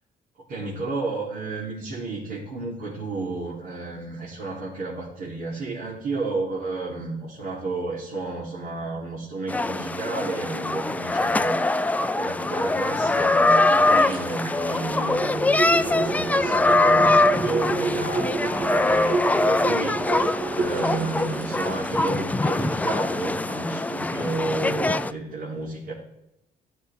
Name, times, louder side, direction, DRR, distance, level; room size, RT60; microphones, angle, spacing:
voice 1, 0.5-20.1 20.5-25.9, right 3 dB, 80° right, -7 dB, 3.9 m, -31 dB
sound 1, 9.5-25.1, left 2 dB, 10° left, 0.4 m, -23 dB
sound 2, 13.4-13.5 13.8-22.8 23.2-23.3, right 3 dB, 55° right, 2.7 m, -30 dB
14.5 x 6.9 x 3.7 m, 0.86 s
cardioid pair, 110°, 17 cm